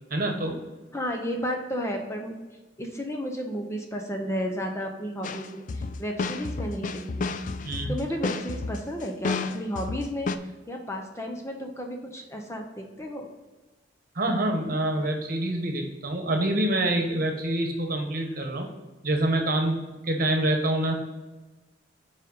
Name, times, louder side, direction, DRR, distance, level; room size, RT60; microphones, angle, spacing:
voice 1, 0.1-0.6 7.6-7.9 14.1-18.7 19.0-20.9, right 1 dB, 50° right, 3 dB, 1.2 m, -26 dB
voice 2, 0.9-2.4 2.8-7.2 7.9-10.3 10.7-13.3, equal, 15° left, 2 dB, 0.7 m, -33 dB
sound 1, 5.2-10.4, left 3 dB, 45° left, 0.4 m, -31 dB
5.2 x 5.0 x 5.3 m, 1.2 s
head